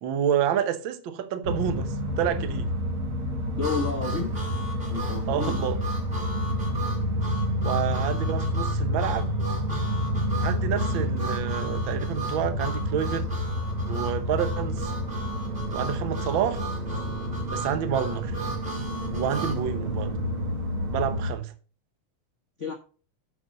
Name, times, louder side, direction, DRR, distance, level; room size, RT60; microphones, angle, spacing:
voice 1, 0.0-2.7 5.3-5.8 7.6-9.3 10.4-13.3 13.9-14.9 15.7-16.6 17.5-18.4 19.1-20.1 20.9-21.5, right 9 dB, 70° right, 1.1 m, -29 dB
sound 1, 1.4-21.3, equal, 50° right, 2.0 m, -29 dB
voice 2, 3.6-4.3 4.9-5.6 22.6-22.7, left 4 dB, 90° left, 0.6 m, -30 dB
Harmonica, 3.6-19.6, right 2 dB, 20° right, 2.3 m, -37 dB
8.3 x 6.1 x 5.2 m
omnidirectional pair, 3.5 m